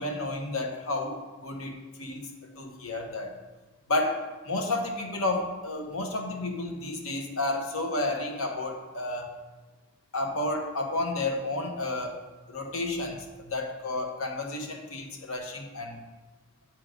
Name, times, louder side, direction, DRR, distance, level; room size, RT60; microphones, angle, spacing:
voice 1, 0.0-2.3 2.6-3.4 3.9-9.3 10.1-12.2 12.5-16.0, left 2 dB, 85° left, 2 dB, 1.2 m, -31 dB
9.0 x 4.8 x 3.8 m, 1.2 s
head